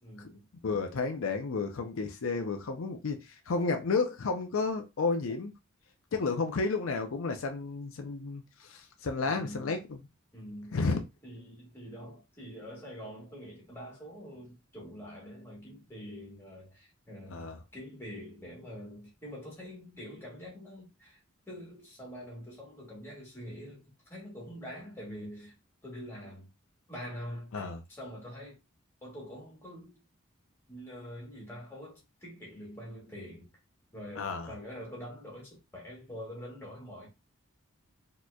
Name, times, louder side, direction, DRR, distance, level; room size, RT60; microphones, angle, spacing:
voice 1, 0.0-0.5 9.2-9.9 10.3-10.9 11.2-21.2 21.5-25.5 25.8-26.5 26.9-28.6 29.0-30.0 30.7-33.5 33.9-37.1, equal, 10° left, 1.8 m, -45 dB
voice 2, 0.6-5.5 6.1-10.0 10.7-11.0 17.3-17.6 27.5-27.8 34.2-34.5, left 4 dB, 70° left, 0.5 m, -32 dB
4.2 x 3.0 x 2.2 m
head